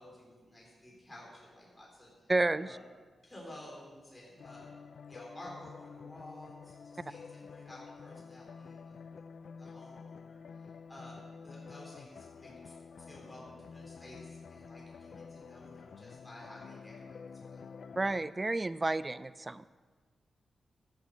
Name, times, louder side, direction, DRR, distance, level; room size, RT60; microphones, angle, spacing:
voice 1, 0.0-2.3 2.6-2.8 3.2-4.7 5.1-9.2 9.6-12.7 13.0-17.7, left 1 dB, 15° left, -4 dB, 3.9 m, -52 dB
voice 2, 2.3-2.8 18.0-19.7, right 2 dB, 25° right, 15 dB, 0.4 m, -31 dB
sound 1, 4.4-18.3, left 5 dB, 65° left, 0.4 m, -49 dB
14.0 x 7.2 x 6.4 m, 1.4 s
wide cardioid pair, 100°, 0 cm